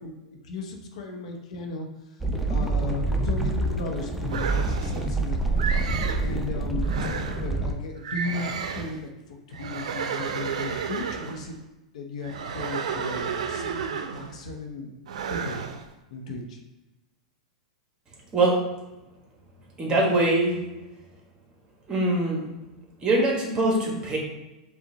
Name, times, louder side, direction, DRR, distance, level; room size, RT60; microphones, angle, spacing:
voice 1, 0.0-2.2 2.4-5.6 6.2-7.1 7.4-11.6 11.9-15.0 15.3-15.6 16.1-16.6, left 3 dB, 70° left, 2 dB, 0.9 m, -36 dB
sound 1, 2.2-7.7, right 3 dB, 5° right, 0.6 m, -26 dB
sound 2, 4.3-5.1 5.6-6.3 6.8-7.5 8.0-9.0 9.5-11.5 12.2-14.4 15.1-15.9, right 6 dB, 75° right, 0.4 m, -32 dB
voice 2, 18.3-18.7 19.8-20.6 21.9-22.5 23.0-24.2, right 2 dB, 25° right, 0 dB, 1.3 m, -23 dB
5.2 x 2.5 x 3.9 m, 1.1 s
hypercardioid pair, 110°, 4 cm